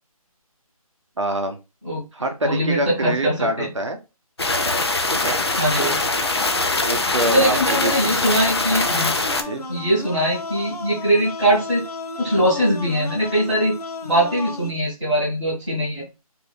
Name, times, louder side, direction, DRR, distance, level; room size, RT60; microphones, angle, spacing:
voice 1, 1.2-1.6 2.1-4.0 5.2-5.4 6.8-7.9 9.4-9.6, right 1 dB, 50° right, 5 dB, 0.6 m, -25 dB
voice 2, 2.4-3.7 5.6-6.0 7.3-9.1 9.7-11.8 12.2-13.7 14.0-16.0, right 1 dB, ahead, -19 dB, 0.8 m, -21 dB
sound 1, 4.4-9.4, left 2 dB, 45° left, 0.4 m, -22 dB
sound 2, 8.7-14.7, left 3 dB, 85° left, 0.7 m, -34 dB
2.7 x 2.6 x 3.3 m, 0.28 s
figure-of-eight pair, 175°, 19 cm